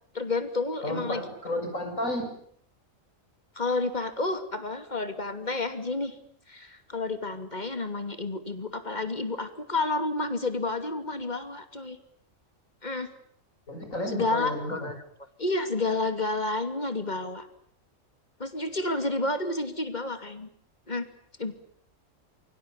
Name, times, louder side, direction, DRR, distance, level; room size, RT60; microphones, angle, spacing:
voice 1, 0.1-1.2 3.6-6.2 6.5-12.0 12.8-13.1 14.1-15.0 15.4-17.5 18.4-20.5 20.9-21.1 21.4-21.5, left 2 dB, 35° left, 8 dB, 2.8 m, -30 dB
voice 2, 0.8-2.4 13.7-14.9, left 1 dB, 75° left, 5 dB, 7.0 m, -32 dB
28.0 x 24.0 x 7.1 m, 0.64 s
omnidirectional pair, 1.4 m